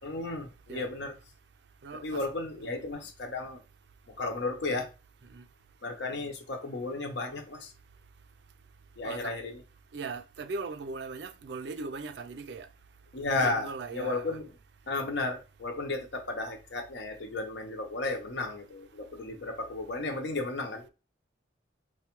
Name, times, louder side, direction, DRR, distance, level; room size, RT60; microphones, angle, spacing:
voice 1, 0.0-1.2 2.0-3.6 4.1-4.9 5.8-7.7 9.0-9.6 13.1-14.4 14.9-20.9, left 2 dB, 65° left, 0.7 m, -34 dB
voice 2, 1.8-2.2 2.6-2.8 5.3-5.4 9.0-9.3 9.9-12.7 13.3-14.4, right 4 dB, 65° right, 0.4 m, -39 dB
4.5 x 2.2 x 2.9 m
head